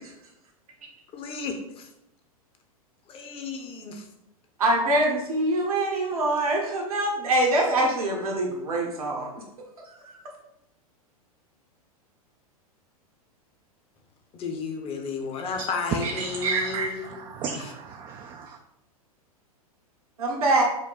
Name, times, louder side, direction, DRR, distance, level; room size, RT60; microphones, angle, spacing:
voice 1, 1.1-1.9 3.1-4.0 14.3-17.2 17.5-17.7, left 4 dB, 30° left, 4 dB, 0.8 m, -33 dB
voice 2, 4.6-9.4 9.9-10.2 20.2-20.6, right 1 dB, 70° right, 0 dB, 1.1 m, -24 dB
voice 3, 16.0-18.5, right 4 dB, 25° right, 3 dB, 0.4 m, -31 dB
5.1 x 2.2 x 4.1 m, 0.86 s
figure-of-eight pair, 95°, 19 cm